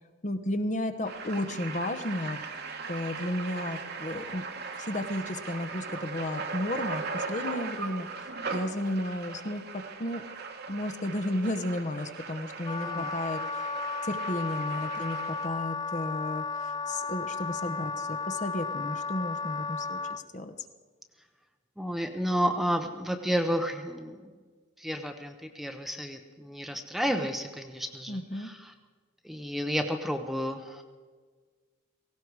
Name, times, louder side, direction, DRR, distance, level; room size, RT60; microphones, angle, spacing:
voice 1, 0.2-2.4 2.9-4.4 4.8-8.3 8.5-10.2 10.7-13.7 14.0-20.5 28.1-28.5, left 1 dB, 35° left, 9 dB, 0.9 m, -33 dB
sound 1, 1.0-15.5, right 4 dB, 50° right, 1.3 m, -39 dB
Wind instrument woodwind instrument, 12.6-20.2, left 4 dB, 20° left, 0.4 m, -34 dB
voice 2, 21.8-24.3 24.8-28.7 29.2-30.8, equal, ahead, 6 dB, 0.8 m, -31 dB
17.0 x 17.0 x 4.7 m, 1.5 s
head